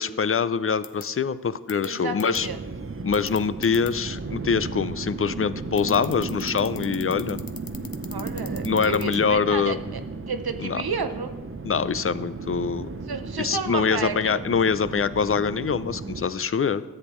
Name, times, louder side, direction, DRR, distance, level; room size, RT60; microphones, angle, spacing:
voice 1, 0.0-2.5 3.0-7.4 8.6-9.8 10.6-10.8 11.6-12.9 13.4-16.8, left 6 dB, 40° left, 15 dB, 0.4 m, -24 dB
sound 1, 0.8-1.0 1.7-1.9 2.2-2.4 3.1-3.9 5.8-9.2, left 6 dB, 65° left, 0.7 m, -39 dB
voice 2, 1.8-2.6 8.1-10.0 10.3-11.4 13.1-14.4, right 4 dB, 90° right, 7 dB, 0.7 m, -31 dB
sound 2, 2.3-16.2, right 3 dB, 35° right, 0.6 m, -34 dB
13.5 x 7.9 x 3.1 m, 1.3 s
wide cardioid pair, 50°, 36 cm